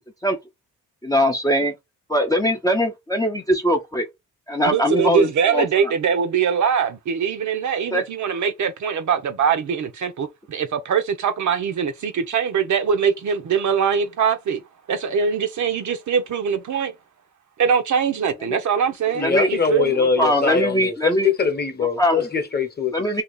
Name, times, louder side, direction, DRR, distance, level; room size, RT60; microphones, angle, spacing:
voice 1, 1.0-1.7 2.1-4.0 4.5-5.9 7.9-8.0 18.5-18.6 19.2-19.5 20.0-21.3 22.0-22.3 22.9-23.2, equal, 10° left, 0.5 m, -21 dB
voice 2, 4.7-14.6 14.9-16.9 17.6-20.0, right 7 dB, 60° right, 0.8 m, -22 dB
voice 3, 19.1-23.1, left 5 dB, 30° left, 1.0 m, -22 dB
2.9 x 2.8 x 3.8 m
cardioid pair, 110°, 33 cm